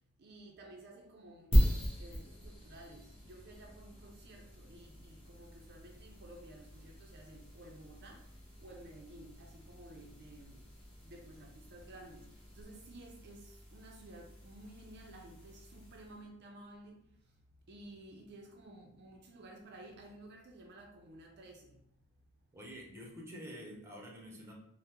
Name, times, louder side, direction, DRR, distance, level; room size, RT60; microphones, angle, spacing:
voice 1, 0.2-8.3 8.6-10.6 11.0-17.0 17.7-21.8, right 1 dB, 55° right, 0 dB, 0.4 m, -54 dB
sound 1, 1.5-16.2, equal, 30° left, 1.0 m, -38 dB
voice 2, 22.5-24.5, equal, 10° right, -2 dB, 0.6 m, -48 dB
3.5 x 2.0 x 2.8 m, 0.74 s
head